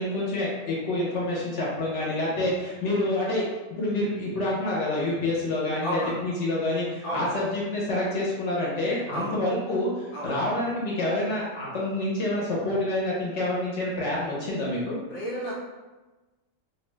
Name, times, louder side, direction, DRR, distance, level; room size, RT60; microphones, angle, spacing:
voice 1, 0.0-3.4 3.8-15.0, left 1 dB, 70° left, -5 dB, 1.0 m, -27 dB
voice 2, 5.8-6.2 7.0-7.3 9.1-9.4 10.1-10.3 15.1-15.5, right 1 dB, 30° left, -7 dB, 0.7 m, -31 dB
2.7 x 2.2 x 3.0 m, 1.2 s
omnidirectional pair, 1.4 m